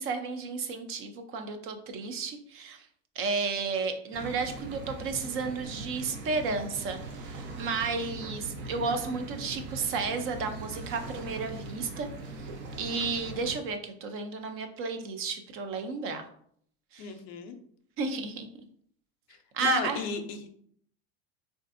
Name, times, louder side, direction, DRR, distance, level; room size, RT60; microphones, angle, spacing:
voice 1, 0.0-2.8 3.2-12.5 12.8-16.3 16.9-17.1 18.0-18.5 19.5-20.0, right 4 dB, 40° right, 6 dB, 0.4 m, -33 dB
sound 1, 4.1-13.6, right 2 dB, 75° right, 0.8 m, -41 dB
voice 2, 17.0-17.5 19.6-20.4, left 6 dB, 50° left, 7 dB, 0.5 m, -33 dB
3.3 x 2.5 x 2.5 m, 0.64 s
supercardioid pair, 125°, 33 cm